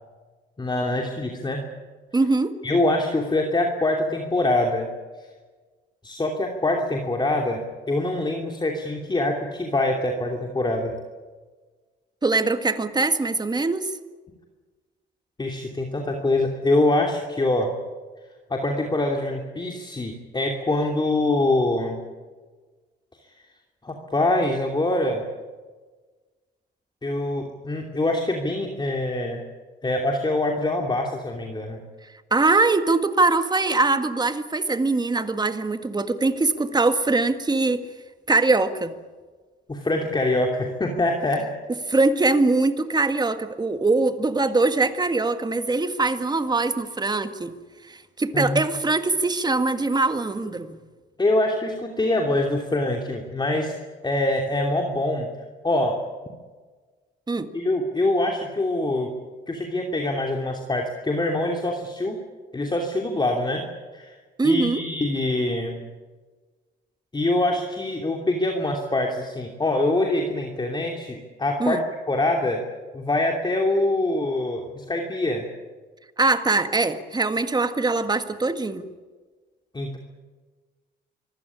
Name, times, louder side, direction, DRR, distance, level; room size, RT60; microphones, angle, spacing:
voice 1, 0.6-1.7 2.6-4.9 6.0-10.9 15.4-17.7 18.5-22.0 23.8-25.2 27.0-29.4 29.8-31.8 39.7-41.5 48.3-48.6 51.2-53.7 54.0-55.3 55.6-56.0 57.5-59.1 59.5-62.2 62.5-63.7 63.9-64.2 64.4-65.8 67.1-72.6 72.9-75.5 79.7-80.0, left 2 dB, 20° left, 2 dB, 3.0 m, -24 dB
voice 2, 2.1-2.6 12.2-13.9 32.3-37.8 38.3-38.9 41.9-47.6 47.9-50.8 57.3-57.5 64.4-64.8 71.6-71.8 76.2-78.9, right 3 dB, 20° right, 9 dB, 1.7 m, -22 dB
24.5 x 16.0 x 10.0 m, 1.4 s
cardioid pair, 90°, 20 cm